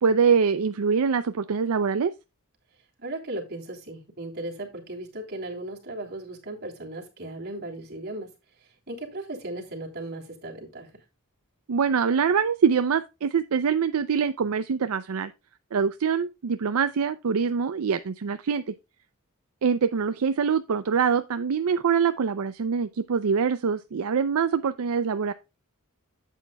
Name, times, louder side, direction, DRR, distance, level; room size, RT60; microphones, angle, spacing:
voice 1, 0.0-2.1 11.7-15.3 15.7-18.7 19.6-25.3, right 6 dB, 75° right, 0.5 m, -24 dB
voice 2, 3.0-8.3 8.9-10.9, right 1 dB, 50° right, 3.1 m, -36 dB
11.5 x 8.3 x 2.2 m
head